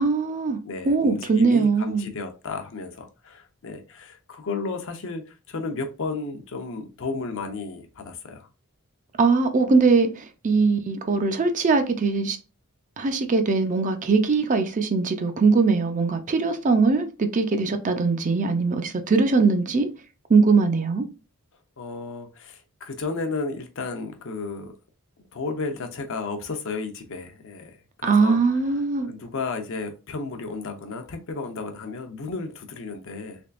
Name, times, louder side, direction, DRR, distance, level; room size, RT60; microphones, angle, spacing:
voice 1, 0.0-0.6 0.9-2.1 9.2-12.4 13.0-19.9 20.3-21.0 28.0-29.1, right 4 dB, 35° right, 0.4 m, -21 dB
voice 2, 0.6-8.5 21.8-24.7 25.3-27.8 28.0-28.4 29.0-33.4, left 3 dB, 60° left, 0.6 m, -33 dB
3.4 x 3.2 x 2.4 m
head